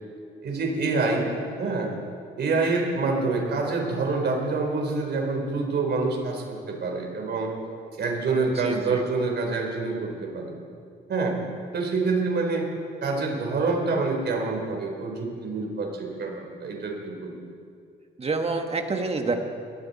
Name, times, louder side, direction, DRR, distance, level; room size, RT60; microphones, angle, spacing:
voice 1, 0.4-1.9 2.4-7.5 8.0-10.6 11.1-11.4 11.7-12.7 13.0-17.3, right 3 dB, 60° right, 1 dB, 4.1 m, -26 dB
voice 2, 8.6-9.0 18.2-19.3, right 3 dB, 30° right, 4 dB, 1.8 m, -27 dB
21.0 x 13.5 x 4.3 m, 2.3 s
cardioid pair, 90°, 20 cm